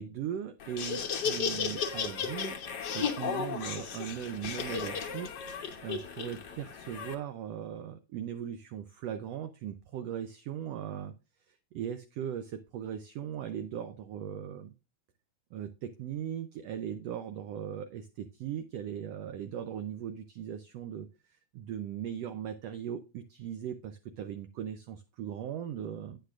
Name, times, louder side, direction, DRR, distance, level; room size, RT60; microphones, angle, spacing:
voice 1, 0.0-2.6 2.9-11.1 11.5-14.7 15.5-21.1 21.5-26.2, right 9 dB, 85° right, 9 dB, 1.4 m, -39 dB
Laughter, 0.6-7.1, left 6 dB, 70° left, 0.9 m, -35 dB
9.6 x 9.0 x 2.5 m, 0.28 s
omnidirectional pair, 3.6 m